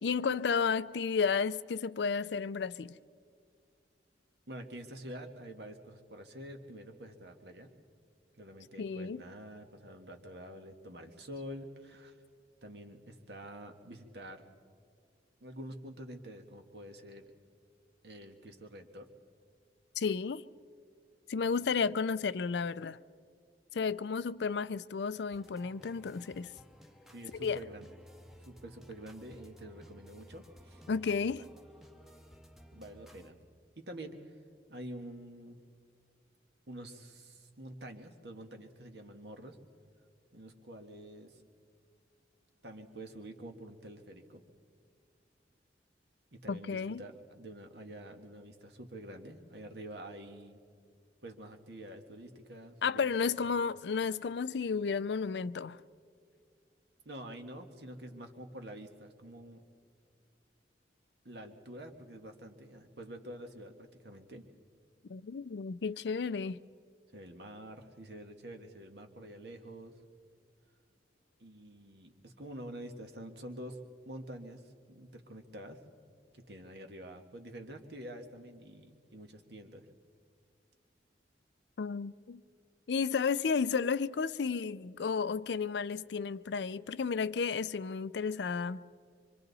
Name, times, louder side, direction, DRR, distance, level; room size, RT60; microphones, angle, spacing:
voice 1, 0.0-3.0 8.8-9.2 20.0-20.4 21.3-23.0 23.7-26.5 27.4-27.6 30.9-31.4 46.5-47.0 52.8-55.8 65.1-66.6 81.8-82.4 82.9-88.8, left 5 dB, 75° left, 0.5 m, -32 dB
voice 2, 4.5-7.7 8.3-12.2 12.6-14.5 15.4-17.3 18.0-19.1 21.4-21.8 27.1-28.0 28.5-30.8 31.4-31.5 32.7-33.3 33.8-34.4 34.7-35.6 36.7-39.6 40.3-41.4 42.6-44.4 46.3-50.6 51.2-53.1 53.5-53.8 57.1-59.7 61.3-64.5 67.1-70.0 71.4-73.8 74.1-75.8 76.3-79.9, right 1 dB, 65° right, 1.7 m, -47 dB
sound 1, 25.3-33.3, equal, ahead, 0.9 m, -56 dB
25.0 x 25.0 x 4.1 m
head